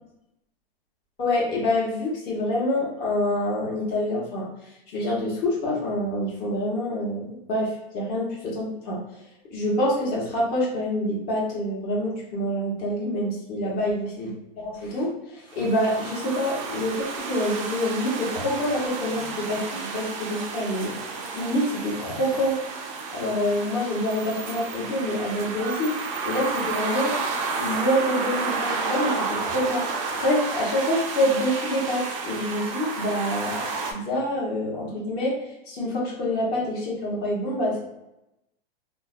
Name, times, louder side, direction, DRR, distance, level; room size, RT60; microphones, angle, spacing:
voice 1, 1.2-4.5 4.9-9.0 9.5-14.3 14.6-20.9 21.3-22.6 23.1-26.0 26.2-27.1 27.5-29.9 30.2-33.6 33.9-35.4 35.7-37.8, left 1 dB, 30° left, -4 dB, 0.9 m, -26 dB
sound 1, 15.5-33.9, right 4 dB, 35° right, 0.4 m, -31 dB
2.5 x 2.1 x 2.4 m, 0.88 s
hypercardioid pair, 145°, 29 cm